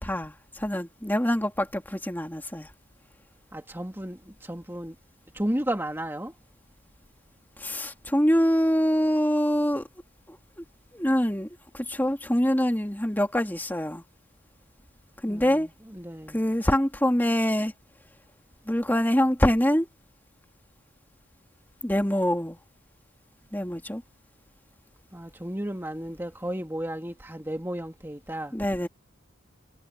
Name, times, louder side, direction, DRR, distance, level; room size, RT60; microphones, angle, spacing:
voice 1, 0.0-2.7 7.6-9.8 10.3-10.6 10.9-11.5 11.7-14.0 15.2-15.7 16.3-17.7 18.7-19.9 21.8-22.6 23.5-24.0 28.5-28.9, equal, 10° left, 2.6 m, -25 dB
voice 2, 3.5-4.9 5.3-6.3 15.3-16.4 25.1-28.6, right 1 dB, 10° right, 2.3 m, -33 dB
head